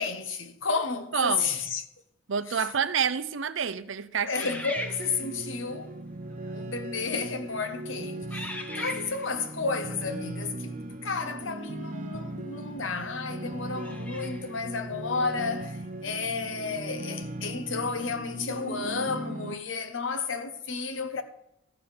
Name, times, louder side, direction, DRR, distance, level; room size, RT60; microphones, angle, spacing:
voice 1, 0.0-1.8 2.5-2.7 4.2-6.0 6.5-10.7 11.0-21.2, left 4 dB, 75° left, 1.1 m, -32 dB
voice 2, 1.1-1.5 2.3-4.3, right 7 dB, 75° right, 0.6 m, -28 dB
sound 1, 4.3-5.5 6.3-6.5 7.2-7.5 8.3-9.4 12.1-12.2 13.7-14.6, left 1 dB, 10° left, 0.7 m, -38 dB
sound 2, 4.8-19.5, right 2 dB, 40° right, 0.6 m, -38 dB
13.5 x 5.2 x 5.6 m
head